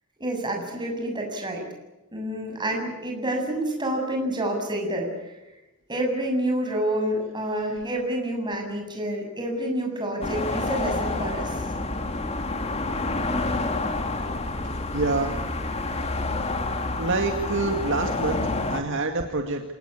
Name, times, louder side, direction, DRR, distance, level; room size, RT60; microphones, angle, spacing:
voice 1, 0.2-1.6 2.1-5.4 5.9-11.6, right 1 dB, 20° right, 2 dB, 7.6 m, -28 dB
sound 1, 10.2-18.8, left 2 dB, 30° left, 2.5 m, -28 dB
voice 2, 14.9-15.3 17.0-18.4 18.7-19.6, right 3 dB, 60° right, 4 dB, 2.2 m, -26 dB
27.5 x 19.0 x 8.5 m, 1.0 s
head